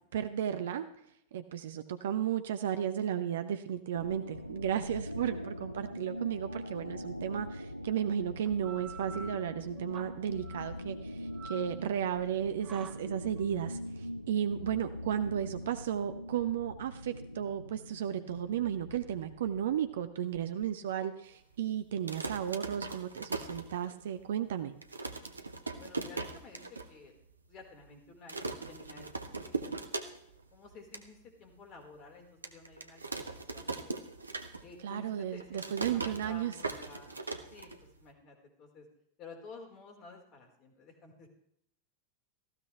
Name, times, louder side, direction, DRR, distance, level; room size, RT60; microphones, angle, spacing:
voice 1, 0.1-0.9 1.3-24.7 34.8-36.5, right 9 dB, 60° right, 9 dB, 0.9 m, -34 dB
sound 1, 3.9-20.7, equal, 90° left, 0.6 m, -43 dB
sound 2, 8.5-17.6, right 4 dB, 25° right, 1.5 m, -51 dB
sound 3, 21.9-24.2 24.5-24.6 24.8-26.9 27.2-27.3 27.5-27.9 28.3-30.4 30.7-31.1 31.6-31.7 32.4-34.9 35.1-38.1, right 3 dB, 80° right, 1.4 m, -39 dB
voice 2, 25.8-27.1 27.5-29.8 30.5-33.7 34.6-35.5 35.8-37.2 37.5-37.7 38.0-38.9 39.2-41.3, left 4 dB, 35° left, 3 dB, 4.5 m, -52 dB
19.0 x 15.0 x 3.4 m, 0.70 s
figure-of-eight pair, 90°, 0 cm